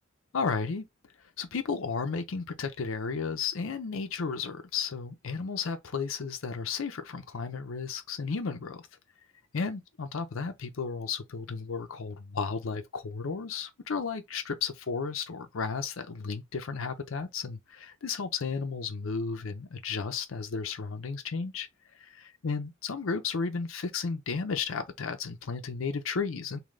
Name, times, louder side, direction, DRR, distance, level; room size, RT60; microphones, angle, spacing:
voice 1, 0.3-0.9 1.4-8.9 9.5-21.7 21.9-26.6, left 5 dB, 80° left, 0.6 m, -33 dB
3.2 x 2.7 x 3.6 m
head